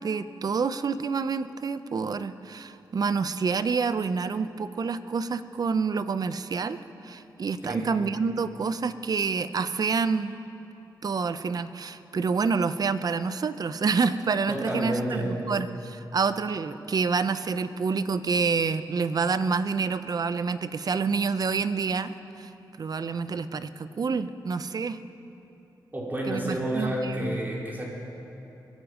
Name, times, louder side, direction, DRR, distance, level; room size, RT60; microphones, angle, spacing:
voice 1, 0.0-6.8 7.0-10.4 11.0-22.5 22.8-25.0 26.3-27.4, right 5 dB, 50° right, 13 dB, 0.6 m, -28 dB
voice 2, 14.5-15.3 25.9-27.9, right 1 dB, 25° right, -4 dB, 4.1 m, -30 dB
23.0 x 10.5 x 5.0 m, 3.0 s
cardioid pair, 70°, 8 cm